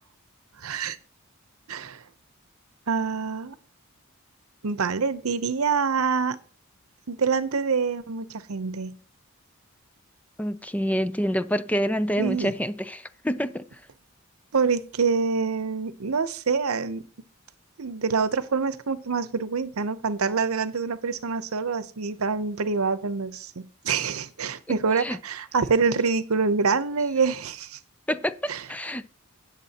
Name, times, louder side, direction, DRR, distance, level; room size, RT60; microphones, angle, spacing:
voice 1, 0.6-1.0 1.7-2.0 2.9-3.6 4.6-6.4 7.1-9.0 12.2-12.5 14.5-17.0 17.8-27.8 28.5-28.6, right 5 dB, 85° right, 0.8 m, -26 dB
voice 2, 10.4-13.7 24.7-25.2 28.1-29.1, equal, 5° left, 0.4 m, -27 dB
17.0 x 7.2 x 2.9 m
head